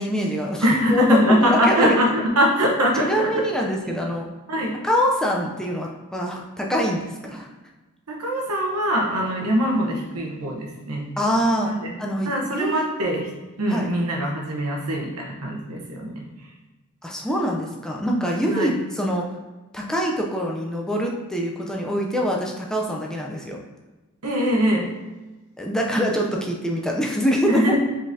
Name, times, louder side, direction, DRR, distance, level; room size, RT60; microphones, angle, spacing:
voice 1, 0.0-2.0 3.0-4.3 4.8-7.5 11.2-11.7 12.0-12.8 13.7-13.9 17.0-19.3 19.7-23.6 25.6-27.8, equal, 5° left, -1 dB, 0.4 m, -24 dB
voice 2, 0.6-3.9 4.5-4.7 7.2-7.4 8.1-11.1 11.6-12.0 12.2-13.3 13.6-16.3 18.5-18.8 24.2-24.9 27.5-27.8, equal, 80° right, 0 dB, 1.0 m, -22 dB
5.0 x 3.9 x 2.7 m, 1.2 s
head